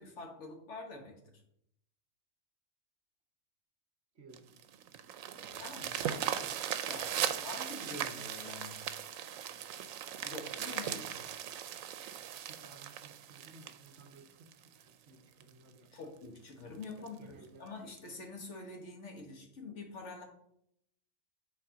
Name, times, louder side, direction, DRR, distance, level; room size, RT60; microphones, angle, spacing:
voice 1, 0.0-1.4 5.4-7.1 7.4-8.8 10.2-11.0 15.9-20.2, left 3 dB, 60° left, 2 dB, 1.6 m, -46 dB
voice 2, 4.1-4.6 7.2-7.4 10.9-11.6 12.5-15.9 17.0-17.7, right 3 dB, 55° right, 5 dB, 1.0 m, -57 dB
sound 1, 4.3-14.8 15.4-15.5 15.9-16.0 16.4-16.5 16.8-17.1 18.0-18.1, right 10 dB, 85° right, 1.0 m, -38 dB
7.3 x 4.1 x 5.1 m, 0.74 s
omnidirectional pair, 1.4 m